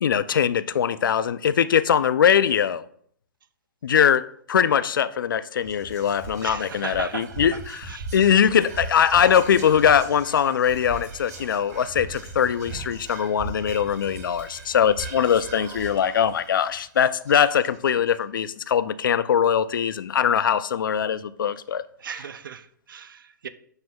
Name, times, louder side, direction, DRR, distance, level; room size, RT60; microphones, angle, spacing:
voice 1, 0.0-2.8 3.8-21.8, left 8 dB, 85° left, 0.4 m, -21 dB
Whispering, 5.6-18.1, right 3 dB, 55° right, 2.4 m, -39 dB
voice 2, 6.4-7.6 7.9-8.1 22.0-23.5, right 7 dB, 85° right, 0.5 m, -37 dB
9.5 x 4.4 x 2.3 m
hypercardioid pair, 160°, 11 cm